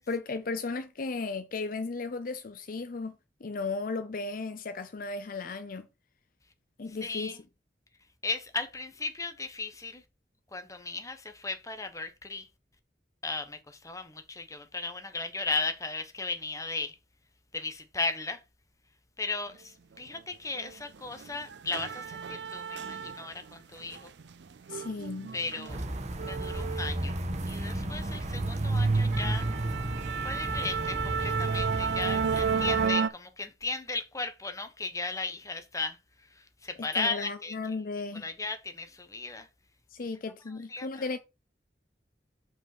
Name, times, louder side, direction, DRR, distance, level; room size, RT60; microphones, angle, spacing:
voice 1, 0.1-3.1 3.4-5.9 6.8-7.4 24.7-25.3 37.0-38.2 39.9-41.2, left 3 dB, 50° left, 0.6 m, -35 dB
voice 2, 6.9-7.4 8.2-10.0 10.5-12.5 13.2-17.0 17.5-18.4 19.2-24.1 25.3-25.8 26.2-27.2 27.5-29.5 30.2-37.8 38.1-39.5 40.0-40.1 40.5-41.0, left 3 dB, 20° left, 1.1 m, -36 dB
sound 1, 20.6-20.7 21.1-23.5 23.8-27.6 28.0-28.3 28.6-28.7 29.1-33.1, right 6 dB, 70° right, 0.5 m, -33 dB
sound 2, 25.7-32.9, right 2 dB, 40° right, 1.3 m, -31 dB
5.5 x 4.8 x 6.0 m
head